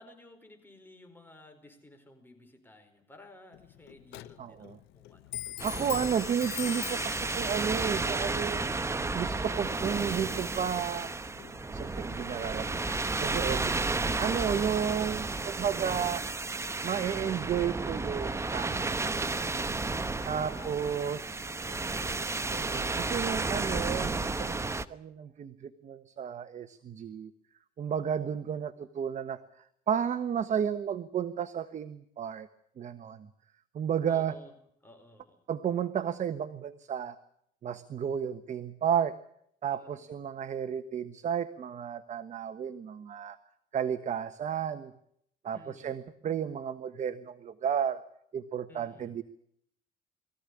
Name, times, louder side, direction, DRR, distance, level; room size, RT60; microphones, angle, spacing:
voice 1, 0.0-5.3 19.9-22.2 34.1-34.5 34.8-35.4 39.7-40.0 45.5-46.0 48.7-49.1, left 2 dB, 10° left, 5 dB, 4.9 m, -55 dB
Clock, 3.5-12.8, left 17 dB, 90° left, 0.8 m, -45 dB
voice 2, 4.4-4.8 5.6-8.8 9.1-11.1 11.7-13.8 14.2-16.3 16.8-19.3 20.3-21.5 22.5-27.3 27.8-29.4 29.9-32.5 32.8-33.3 33.7-34.3 35.5-37.2 37.6-39.2 39.6-43.4 43.7-44.9 45.4-48.0 48.3-49.2, right 8 dB, 45° right, 11 dB, 1.3 m, -32 dB
sound 1, 5.6-24.9, right 3 dB, 15° right, 1.0 m, -32 dB
22.5 x 15.0 x 9.9 m, 0.71 s
cardioid pair, 110°, 17 cm